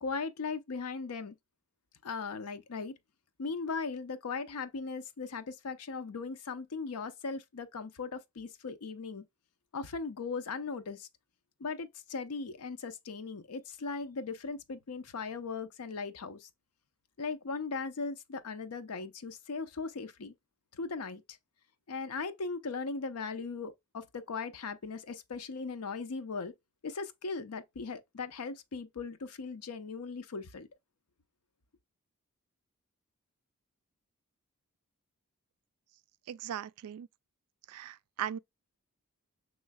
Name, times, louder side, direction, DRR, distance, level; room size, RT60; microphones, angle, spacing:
voice 1, 0.0-1.4 2.0-2.9 3.4-9.2 9.7-11.1 11.6-16.5 17.2-20.3 20.7-21.4 21.9-26.5 26.8-30.7, left 4 dB, 85° left, 0.6 m, -38 dB
voice 2, 36.3-37.1 37.7-38.4, right 10 dB, 80° right, 0.3 m, -38 dB
6.3 x 3.1 x 2.2 m
head